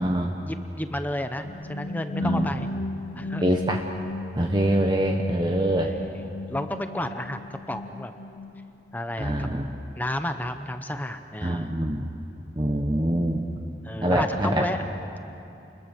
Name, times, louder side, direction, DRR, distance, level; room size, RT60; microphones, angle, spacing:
voice 1, 0.4-2.7 3.2-3.4 5.8-8.1 8.9-9.5 10.0-11.8 13.8-14.8, left 1 dB, 10° left, 8 dB, 0.8 m, -32 dB
sound 1, 1.4-9.0, left 2 dB, 60° left, 0.7 m, -35 dB
voice 2, 3.4-3.8 4.4-6.0 9.2-9.8 11.4-12.1 12.5-13.5 14.0-14.7, right 1 dB, 25° right, 2 dB, 1.2 m, -24 dB
29.5 x 21.5 x 6.7 m, 2.8 s
head